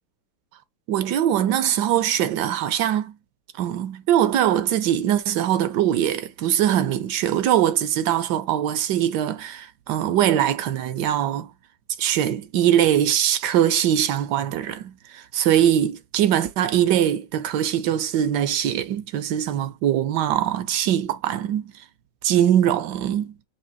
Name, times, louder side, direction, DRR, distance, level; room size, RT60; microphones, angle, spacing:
voice 1, 0.9-3.1 3.6-11.5 12.0-21.7 22.2-23.3, right 10 dB, 70° right, 1.1 m, -22 dB
5.7 x 2.7 x 2.4 m
omnidirectional pair, 2.0 m